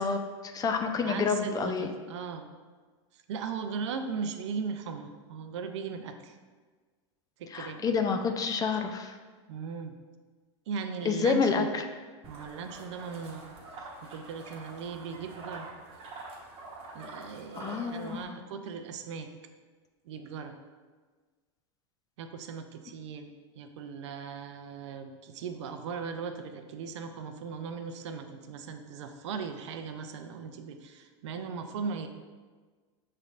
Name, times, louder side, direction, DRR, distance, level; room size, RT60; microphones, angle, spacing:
voice 1, 0.0-1.9 7.5-9.1 11.0-11.8 17.6-18.4, left 5 dB, 25° left, 5 dB, 0.4 m, -29 dB
voice 2, 1.0-2.5 3.1-6.4 7.4-7.9 9.5-10.0 10.7-11.7 12.2-13.5 14.0-15.7 16.9-19.3 20.1-20.6 22.2-32.1, right 5 dB, 75° right, 7 dB, 0.5 m, -38 dB
sound 1, 12.2-18.2, right 2 dB, 40° right, 1.0 m, -46 dB
6.5 x 3.2 x 2.4 m, 1.4 s
hypercardioid pair, 105°, 15 cm